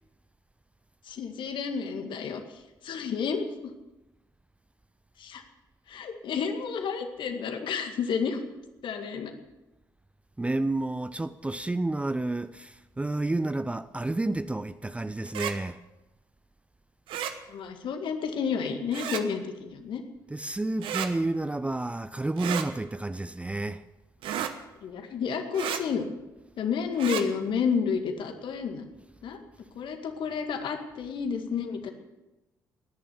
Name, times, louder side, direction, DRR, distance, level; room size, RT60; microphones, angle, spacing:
voice 1, 1.1-2.4 2.8-3.7 5.2-5.4 5.9-8.4 8.8-9.3 17.5-20.0 24.8-26.0 26.6-28.9 29.2-29.4 29.7-31.9, left 6 dB, 55° left, 2.0 m, -30 dB
voice 2, 10.4-15.8 20.3-23.8, right 2 dB, 10° right, 0.6 m, -30 dB
sound 1, 15.3-15.5 17.1-17.3 18.9-19.2 20.8-21.1 22.4-22.7 24.2-24.5 25.5-25.8 26.9-27.2, right 9 dB, 60° right, 1.1 m, -32 dB
19.0 x 10.5 x 7.2 m
figure-of-eight pair, 45°, 10 cm